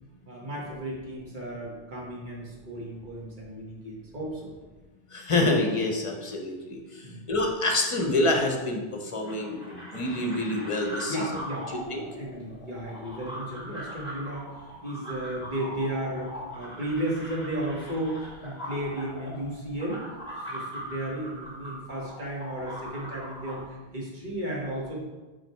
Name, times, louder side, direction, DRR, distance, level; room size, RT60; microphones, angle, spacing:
voice 1, 0.3-4.5 7.0-7.3 11.1-14.5 14.8-20.0 20.5-25.0, right 1 dB, 50° right, -3 dB, 1.6 m, -34 dB
voice 2, 5.1-11.3 11.7-12.0, left 2 dB, 35° left, 2 dB, 0.8 m, -27 dB
sound 1, 9.2-23.6, equal, 5° right, 1.8 m, -41 dB
5.0 x 4.8 x 4.5 m, 1.2 s
omnidirectional pair, 1.1 m